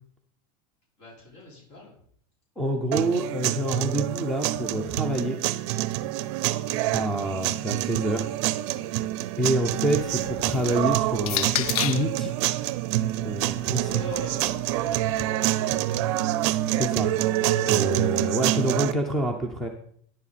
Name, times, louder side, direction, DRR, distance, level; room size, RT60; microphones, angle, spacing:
voice 1, 1.0-1.9 6.4-6.7 13.8-16.2, left 3 dB, 55° left, -4 dB, 5.2 m, -43 dB
voice 2, 2.6-5.4 6.9-8.3 9.4-12.5 13.2-13.9 16.7-17.1 17.7-19.7, right 1 dB, ahead, 4 dB, 0.6 m, -27 dB
sound 1, 2.9-18.9, right 14 dB, 55° right, 0.5 m, -26 dB
sound 2, 9.7-12.2 13.1-15.2, left 12 dB, 80° left, 0.6 m, -34 dB
10.5 x 10.5 x 4.2 m, 0.64 s
supercardioid pair, 175°, 18 cm